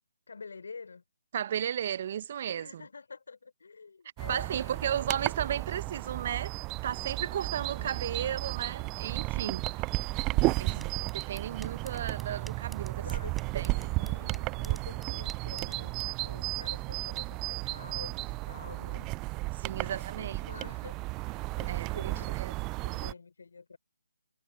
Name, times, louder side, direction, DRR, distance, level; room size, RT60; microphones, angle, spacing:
voice 1, 0.3-1.0 2.5-5.2 7.7-8.2 10.3-11.7 12.9-19.1 19.7-23.8, left 4 dB, 65° left, 4.5 m, -49 dB
voice 2, 1.3-2.8 4.3-6.6 6.8-9.6 10.6-13.0 13.5-13.7 19.6-20.4 21.7-22.5, right 9 dB, 40° right, 1.1 m, -34 dB
sound 1, 4.2-23.1, right 23 dB, 20° right, 0.4 m, -34 dB
sound 2, 10.0-17.2, right 2 dB, ahead, 5.0 m, -54 dB
figure-of-eight pair, 145°, 0 cm